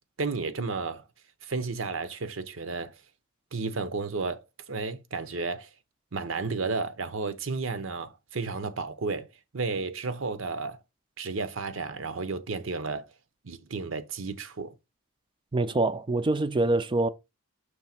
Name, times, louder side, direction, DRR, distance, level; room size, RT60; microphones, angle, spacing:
voice 1, 0.2-1.0 1.4-3.0 3.5-5.7 6.1-9.3 9.5-10.8 11.2-13.1 13.4-14.7, right 4 dB, 65° right, 0.9 m, -32 dB
voice 2, 15.5-17.1, right 2 dB, 25° right, 0.5 m, -25 dB
6.3 x 3.2 x 5.8 m
head